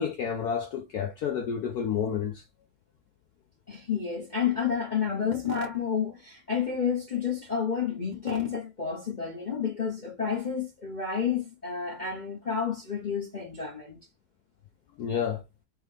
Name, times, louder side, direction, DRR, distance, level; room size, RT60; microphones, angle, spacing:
voice 1, 0.0-2.4 15.0-15.4, left 7 dB, 75° left, 0.9 m, -30 dB
voice 2, 3.7-14.0, left 7 dB, 40° left, 0.6 m, -30 dB
3.8 x 3.3 x 3.2 m
omnidirectional pair, 2.2 m